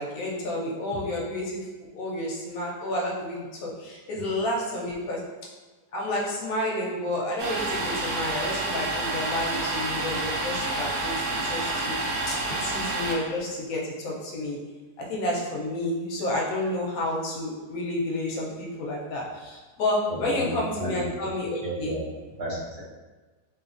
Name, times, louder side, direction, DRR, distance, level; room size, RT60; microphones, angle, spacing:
voice 1, 0.0-1.7 1.9-5.2 5.9-14.6 15.0-21.9, left 1 dB, 70° left, -3 dB, 1.0 m, -30 dB
Domestic sounds home sounds, 7.4-13.2, right 2 dB, 85° right, 1.2 m, -29 dB
voice 2, 20.1-21.0 21.6-22.0 22.4-22.8, right 1 dB, 50° right, -8 dB, 0.6 m, -32 dB
3.0 x 2.4 x 2.4 m, 1.3 s
omnidirectional pair, 1.7 m